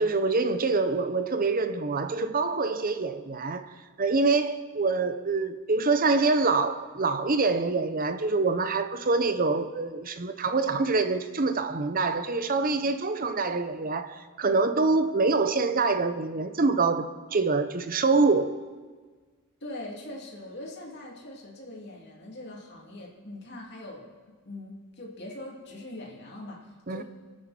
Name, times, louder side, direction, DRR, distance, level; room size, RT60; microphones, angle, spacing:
voice 1, 0.0-3.7 4.0-17.1 17.3-18.6 26.9-27.0, right 3 dB, 40° right, 0.8 m, -25 dB
voice 2, 19.6-24.1 24.4-27.0, left 1 dB, 50° left, 2.9 m, -42 dB
27.5 x 9.3 x 4.4 m
head